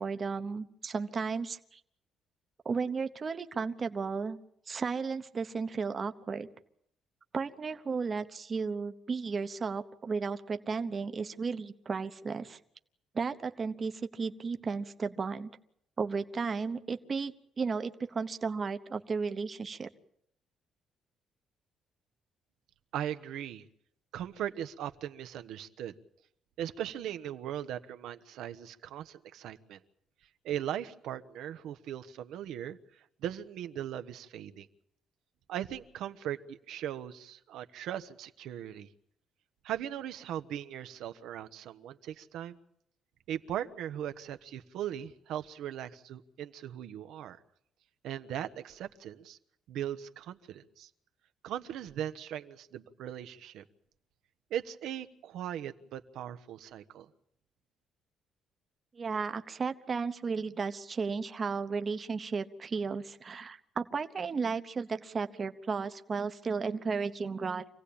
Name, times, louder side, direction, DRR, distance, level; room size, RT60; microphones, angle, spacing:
voice 1, 0.0-1.8 2.6-4.4 4.7-6.5 7.3-12.6 13.1-15.5 16.0-19.9 58.9-67.7, right 5 dB, 30° right, 9 dB, 0.9 m, -34 dB
voice 2, 22.9-23.6 24.1-25.9 26.6-29.8 30.4-32.8 33.2-34.7 35.5-38.9 39.6-42.6 43.3-47.4 48.0-49.4 49.7-50.9 51.4-53.6 54.5-57.1, right 11 dB, 85° right, 9 dB, 1.1 m, -39 dB
26.0 x 17.0 x 8.7 m, 0.72 s
cardioid pair, 160°, 0 cm